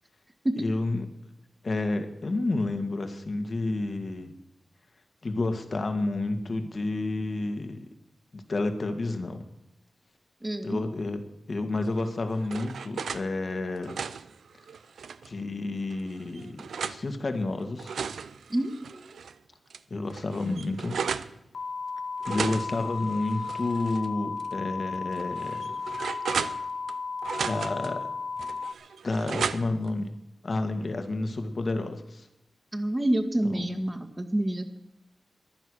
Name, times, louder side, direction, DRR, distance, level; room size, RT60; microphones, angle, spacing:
voice 1, 0.6-1.1 1.6-4.3 5.2-7.9 8.3-9.4 10.6-14.0 15.2-18.0 19.9-21.0 22.3-25.7 27.5-28.1 29.0-30.1 30.4-32.3 33.4-33.8, left 2 dB, 55° left, 7 dB, 2.1 m, -30 dB
voice 2, 10.4-10.8 18.5-19.1 32.7-34.8, right 1 dB, 20° right, 6 dB, 2.0 m, -28 dB
sound 1, 12.0-13.3 13.7-15.3 15.9-17.0 17.6-19.3 19.7-19.8 20.1-21.3 22.2-24.1 24.4-24.5 25.1-26.9 27.2-27.9 28.4-29.9, right 6 dB, 90° right, 0.5 m, -35 dB
sound 2, 21.5-28.7, left 4 dB, 85° left, 1.1 m, -34 dB
15.0 x 11.0 x 6.4 m, 0.89 s
cardioid pair, 50°, 0 cm